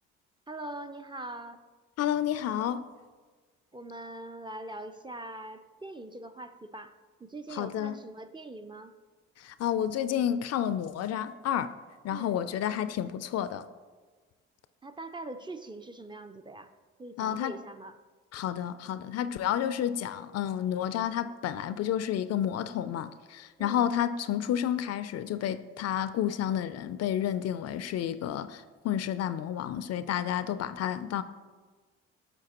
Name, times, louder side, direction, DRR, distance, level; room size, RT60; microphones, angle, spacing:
voice 1, 0.5-1.6 3.7-6.9 7.2-8.9 12.1-12.4 14.8-16.7 17.0-18.0 23.6-23.9, right 2 dB, 15° right, 0.4 m, -42 dB
voice 2, 2.0-2.9 7.5-8.0 9.4-11.7 12.0-13.6 17.2-17.6 18.3-31.2, left 10 dB, 55° left, 0.4 m, -30 dB
9.0 x 5.9 x 2.9 m
supercardioid pair, 60°, 30 cm